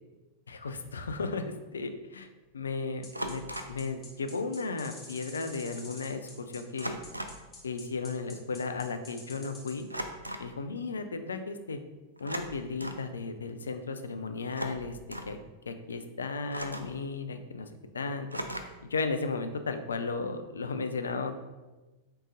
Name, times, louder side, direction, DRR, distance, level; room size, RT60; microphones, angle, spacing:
voice 1, 0.5-2.3 2.5-3.4 3.7-7.0 7.6-9.9 10.4-11.8 12.2-15.0 15.3-15.4 15.7-17.7 17.9-18.4 18.9-21.3, left 4 dB, 70° left, 8 dB, 0.4 m, -35 dB
sound 1, 1.0-1.2 3.1-3.8 5.2-5.3 5.5-5.8 6.8-7.5 9.9-10.5 12.2-13.1 14.4-15.4 16.5-17.0 18.3-18.9, right 1 dB, 85° right, 0.3 m, -38 dB
sound 2, 3.0-9.8, left 3 dB, 20° left, 1.1 m, -47 dB
4.7 x 3.7 x 2.6 m, 1.1 s
figure-of-eight pair, 90°, 0 cm